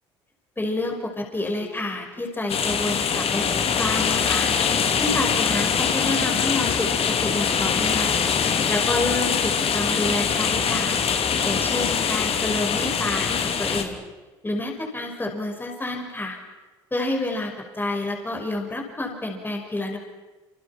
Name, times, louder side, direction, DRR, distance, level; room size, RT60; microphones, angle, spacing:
voice 1, 0.6-8.1 8.4-11.0 11.4-14.0 14.4-16.4 16.9-20.0, left 2 dB, 15° left, 2 dB, 5.7 m, -29 dB
sound 1, 2.5-13.8, left 6 dB, 50° left, 2.9 m, -23 dB
28.0 x 27.5 x 5.9 m, 1.2 s
hypercardioid pair, 60°, 13 cm